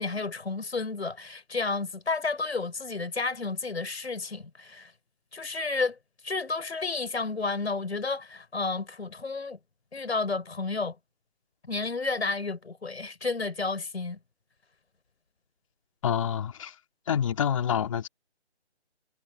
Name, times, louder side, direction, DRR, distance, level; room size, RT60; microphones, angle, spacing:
voice 1, 0.0-4.9 5.3-6.0 6.2-9.6 9.9-11.0 11.6-14.2, left 3 dB, 70° left, 6.7 m, -31 dB
voice 2, 16.0-16.7 17.1-18.1, left 8 dB, 30° left, 2.7 m, -27 dB
figure-of-eight pair, 165°, 34 cm